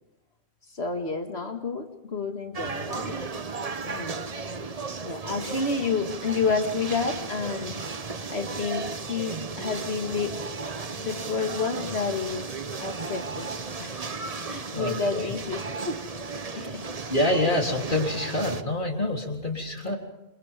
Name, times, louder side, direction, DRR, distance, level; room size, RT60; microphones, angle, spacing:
voice 1, 0.7-3.3 3.9-4.2 5.0-7.8 8.3-10.4 11.0-12.5 12.8-13.5 13.8-14.0 14.5-16.1 16.5-16.8, left 4 dB, 75° left, 5 dB, 2.4 m, -30 dB
sound 1, 2.5-18.6, right 4 dB, 35° right, 1.0 m, -35 dB
voice 2, 14.7-15.3 16.5-16.7 17.1-20.0, left 1 dB, 50° left, 1 dB, 3.8 m, -27 dB
29.0 x 28.0 x 3.7 m, 1.0 s
omnidirectional pair, 1.1 m